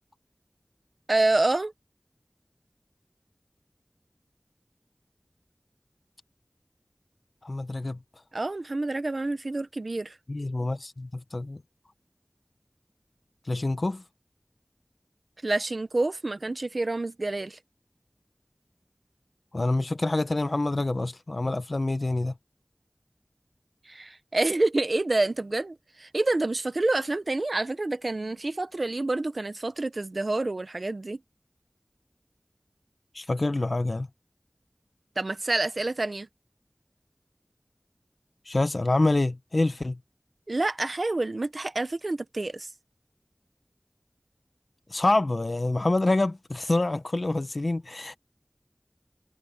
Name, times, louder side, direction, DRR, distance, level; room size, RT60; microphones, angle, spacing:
voice 1, 1.1-1.7 8.3-10.1 15.4-17.6 23.9-31.2 35.2-36.3 40.5-42.7, right 2 dB, 80° right, 0.9 m, -28 dB
voice 2, 7.4-8.0 10.3-11.6 13.5-14.0 19.5-22.3 33.1-34.1 38.5-40.0 44.9-48.2, left 2 dB, 75° left, 0.8 m, -26 dB
wide cardioid pair, 45°, 0 cm